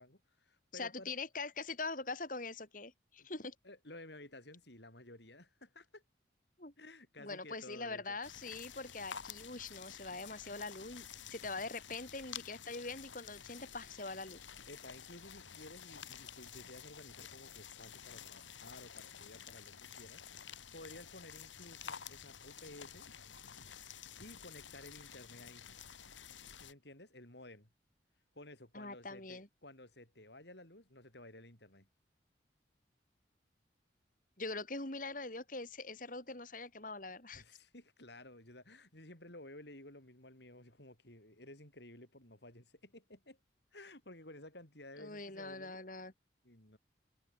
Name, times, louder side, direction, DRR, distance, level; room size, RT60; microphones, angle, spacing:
voice 1, 0.0-1.1 3.2-3.3 3.6-6.0 6.8-8.2 14.7-20.2 20.7-23.1 24.2-25.7 26.6-27.7 28.3-31.9 37.3-43.4 43.7-45.8 46.4-46.8, left 1 dB, 65° left, 7.6 m, -54 dB
voice 2, 0.7-3.6 6.6-6.7 7.2-14.4 28.7-29.5 34.4-37.4 45.0-46.1, left 3 dB, 45° left, 3.6 m, -43 dB
sound 1, 8.2-26.7, left 8 dB, 90° left, 2.5 m, -51 dB
head